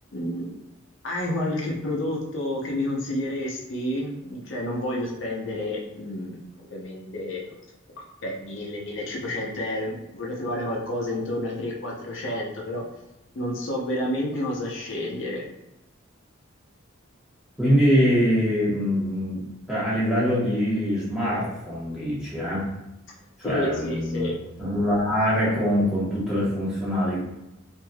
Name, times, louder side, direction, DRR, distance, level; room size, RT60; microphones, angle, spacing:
voice 1, 0.1-0.5 1.0-7.6 8.2-12.8 13.4-15.4 23.4-24.3, left 1 dB, 70° left, -3 dB, 0.6 m, -30 dB
voice 2, 17.6-22.6 23.4-24.3 24.6-27.3, equal, 5° right, -10 dB, 1.0 m, -23 dB
3.2 x 2.5 x 2.3 m, 0.92 s
head